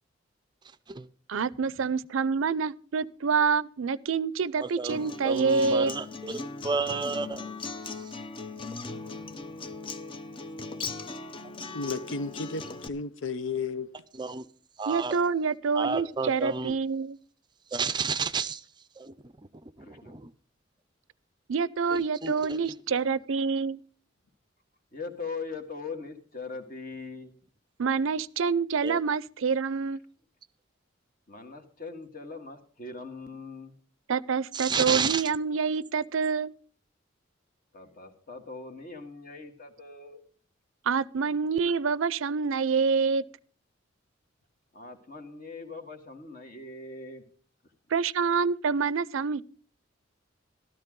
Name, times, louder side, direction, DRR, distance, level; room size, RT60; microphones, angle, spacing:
voice 1, 1.3-5.9 14.9-17.2 21.5-23.8 27.8-30.0 34.1-36.5 40.9-43.2 47.9-49.4, right 5 dB, 85° right, 0.5 m, -27 dB
voice 2, 4.6-7.5 8.0-8.1 9.4-9.5 14.2-14.5 14.8-15.2 15.7-16.7 17.7-18.6 19.0-19.1 19.8-20.3 21.9-22.8 28.8-29.0 34.5-35.2, right 4 dB, 20° right, 0.5 m, -31 dB
Acoustic guitar, 4.9-12.9, left 3 dB, 25° left, 0.6 m, -39 dB
voice 3, 11.7-13.9, left 4 dB, 75° left, 0.7 m, -33 dB
voice 4, 19.8-20.2 24.9-27.3 31.3-33.7 37.7-40.2 44.7-47.2, left 4 dB, 45° left, 1.9 m, -41 dB
13.5 x 13.0 x 3.8 m
head